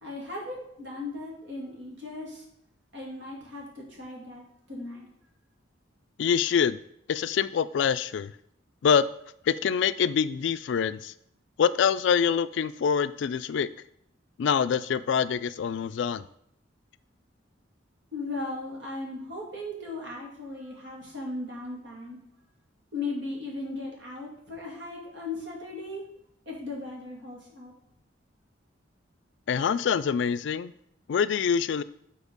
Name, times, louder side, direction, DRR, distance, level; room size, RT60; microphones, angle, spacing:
voice 1, 0.0-2.4 2.9-5.1 18.1-22.2 22.9-26.0 26.5-27.7, left 2 dB, 65° right, -2 dB, 2.4 m, -37 dB
voice 2, 6.2-6.8 7.1-8.3 8.8-9.1 9.5-11.1 11.6-13.7 14.4-16.2 29.5-30.7 31.1-31.8, left 7 dB, 65° left, 14 dB, 0.3 m, -25 dB
7.2 x 4.3 x 5.3 m, 0.72 s
head